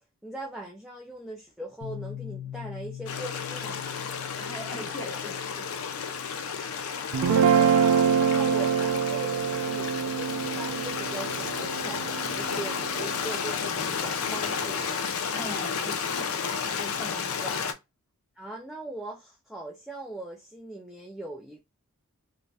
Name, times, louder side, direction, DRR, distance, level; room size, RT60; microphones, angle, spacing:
voice 1, 0.2-4.1 7.2-14.9 17.4-17.8 18.4-21.6, right 2 dB, ahead, 0.3 m, -40 dB
Piano, 1.8-9.2, left 11 dB, 90° left, 0.8 m, -43 dB
Stream, 3.1-17.7, left 6 dB, 65° left, 0.4 m, -32 dB
voice 2, 4.4-5.7 15.3-16.3 16.6-17.5, left 1 dB, 20° left, 1.2 m, -41 dB
Guitar, 7.1-13.5, right 7 dB, 80° right, 0.3 m, -25 dB
2.5 x 2.1 x 3.3 m
head